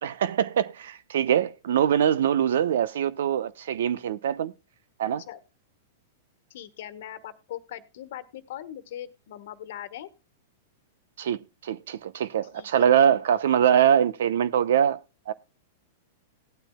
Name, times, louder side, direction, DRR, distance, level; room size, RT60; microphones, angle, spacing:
voice 1, 0.0-4.5 5.0-5.2 11.2-15.0 15.3-15.4, right 9 dB, 70° right, 0.8 m, -23 dB
voice 2, 6.5-10.1 12.5-13.1, left 11 dB, 65° left, 1.3 m, -40 dB
18.0 x 9.0 x 2.2 m
hypercardioid pair, 115°, 0 cm